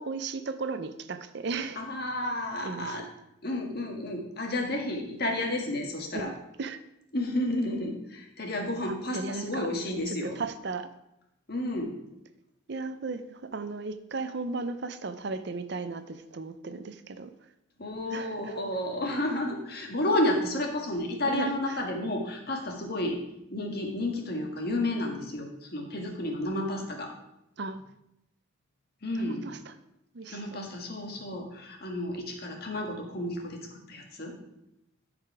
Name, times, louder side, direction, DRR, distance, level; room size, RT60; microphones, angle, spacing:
voice 1, 0.0-1.8 2.6-2.9 6.1-6.8 8.9-9.7 10.1-10.9 12.7-17.3 18.1-18.6 21.3-21.8 27.6-27.8 29.2-29.7 30.1-30.7, right 4 dB, 55° right, 11 dB, 0.6 m, -36 dB
voice 2, 1.8-3.1 3.4-6.3 7.1-10.4 11.5-12.0 17.8-23.2 23.5-27.1 29.0-29.5 30.3-34.4, left 1 dB, 50° left, 1 dB, 1.8 m, -31 dB
14.0 x 5.0 x 4.8 m, 0.85 s
head